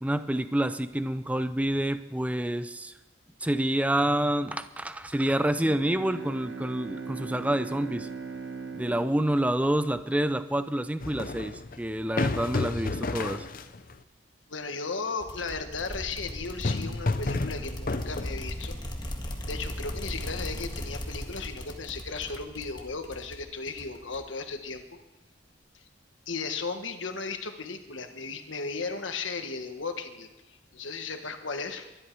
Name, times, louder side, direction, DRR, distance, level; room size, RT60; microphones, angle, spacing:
voice 1, 0.0-2.9 3.4-8.1 8.7-13.5, right 1 dB, 5° right, 11 dB, 0.5 m, -28 dB
Bowed string instrument, 5.6-10.6, right 5 dB, 70° right, 1.6 m, -40 dB
sound 1, 11.0-13.9 16.3-18.7, left 2 dB, 45° left, 0.7 m, -31 dB
voice 2, 14.5-18.8 19.5-24.8 25.7-25.8 26.3-30.3 30.7-32.0, left 4 dB, 85° left, 7 dB, 1.4 m, -35 dB
sound 2, 15.2-24.4, left 1 dB, 25° left, 1.7 m, -38 dB
22.5 x 11.5 x 4.7 m, 1.0 s
head